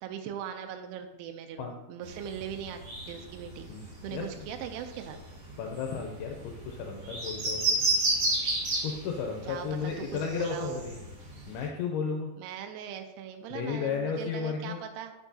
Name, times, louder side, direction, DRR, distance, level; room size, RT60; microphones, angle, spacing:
voice 1, 0.0-3.7 4.0-5.2 9.4-10.9 12.4-15.1, right 8 dB, 85° right, 5 dB, 2.5 m, -40 dB
sound 1, 2.0-11.7, right 2 dB, 50° right, 1.9 m, -33 dB
voice 2, 3.7-4.5 5.6-7.8 8.8-11.0 11.5-12.3 13.5-14.8, left 6 dB, 80° left, 2 dB, 2.4 m, -34 dB
8.2 x 5.9 x 2.7 m, 0.97 s
omnidirectional pair, 4.7 m